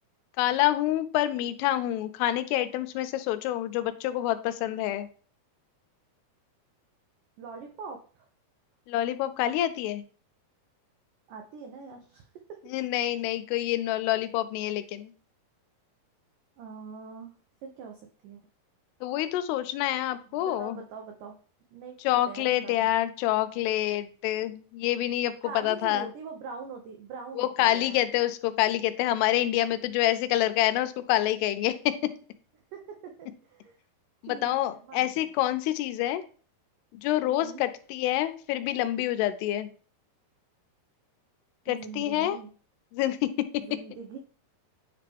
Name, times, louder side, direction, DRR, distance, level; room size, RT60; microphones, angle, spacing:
voice 1, 0.4-5.1 8.9-10.0 12.7-15.1 19.0-20.8 22.0-26.1 27.4-31.9 34.2-36.2 36.9-39.7 41.7-42.4 42.9-43.3, left 13 dB, 85° left, 11 dB, 2.6 m, -27 dB
voice 2, 7.4-8.3 11.3-12.6 16.6-17.3 17.6-18.4 20.3-21.4 21.7-22.0 22.3-22.9 25.4-28.0 32.7-33.8 34.2-35.3 37.2-37.7 41.7-42.5 43.6-44.2, right 5 dB, 85° right, 3 dB, 1.8 m, -43 dB
10.0 x 3.3 x 3.4 m, 0.41 s
omnidirectional pair, 4.7 m